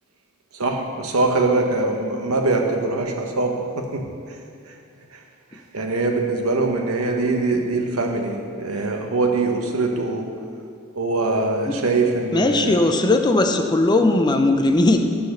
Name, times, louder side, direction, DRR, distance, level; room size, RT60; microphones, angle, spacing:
voice 1, 0.5-4.0 5.1-5.2 5.7-10.2 10.9-12.8, right 3 dB, 90° right, 2 dB, 1.1 m, -22 dB
voice 2, 12.3-15.0, left 2 dB, 20° left, 6 dB, 0.4 m, -18 dB
10.5 x 4.2 x 6.5 m, 2.4 s
head